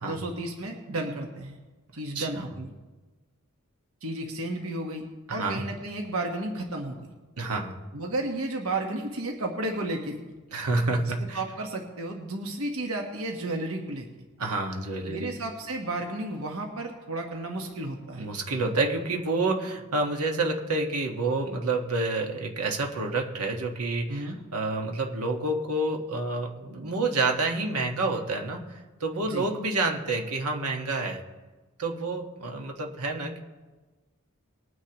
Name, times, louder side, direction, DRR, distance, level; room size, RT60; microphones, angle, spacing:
voice 1, 0.0-1.6 1.9-2.7 4.0-5.0 5.3-7.1 7.9-10.2 11.3-14.1 15.1-18.3 24.1-24.4 29.3-29.5, right 2 dB, 70° right, 2 dB, 1.3 m, -32 dB
voice 2, 2.1-2.5 5.3-5.6 7.4-7.8 10.5-11.4 14.4-15.3 18.2-31.2 31.8-33.4, right 2 dB, 90° right, 2 dB, 1.5 m, -28 dB
21.0 x 9.6 x 3.0 m, 1.2 s
head